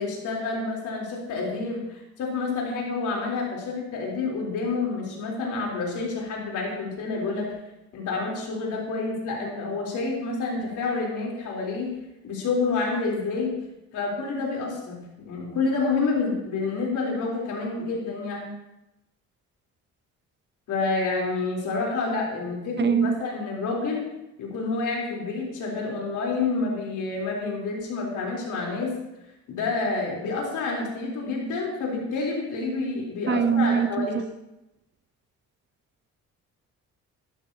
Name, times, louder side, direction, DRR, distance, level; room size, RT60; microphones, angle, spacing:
voice 1, 0.0-7.5 7.9-11.9 12.2-13.5 13.9-18.5 20.7-24.1 24.4-28.9 29.5-34.2, left 3 dB, 80° left, -2 dB, 3.9 m, -28 dB
voice 2, 22.8-23.2 33.3-34.1, right 7 dB, 35° right, 12 dB, 0.7 m, -22 dB
13.5 x 12.0 x 2.9 m, 0.91 s
cardioid pair, 90°, 30 cm